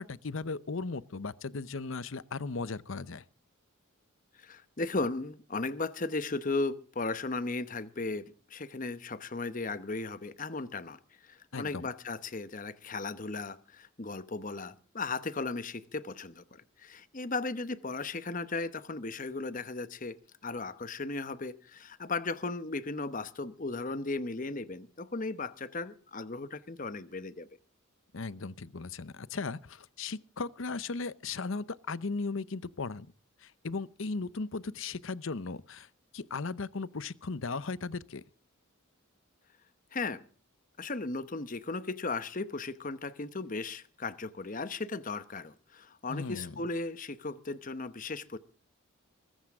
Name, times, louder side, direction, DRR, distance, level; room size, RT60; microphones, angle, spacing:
voice 1, 0.0-3.2 11.5-11.9 28.1-33.1 33.4-35.9 36.1-38.2 46.1-46.5, left 4 dB, 70° left, 0.7 m, -37 dB
voice 2, 4.4-20.2 20.4-27.5 39.9-40.2 40.8-48.4, left 3 dB, 40° left, 1.0 m, -36 dB
22.5 x 14.0 x 3.6 m
head